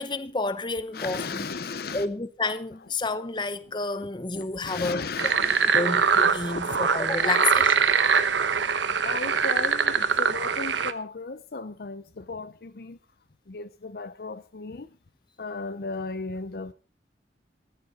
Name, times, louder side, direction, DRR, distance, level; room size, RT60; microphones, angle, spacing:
voice 1, 0.0-1.5 1.9-5.0 5.7-7.9, left 3 dB, 25° left, 0.9 m, -30 dB
voice 2, 0.9-2.1 4.3-5.7 6.4-6.9 9.0-13.0 13.5-15.0 15.4-16.7, left 4 dB, 55° left, 0.6 m, -36 dB
sound 1, 5.2-10.9, right 6 dB, 85° right, 1.0 m, -23 dB
14.5 x 13.5 x 4.1 m
head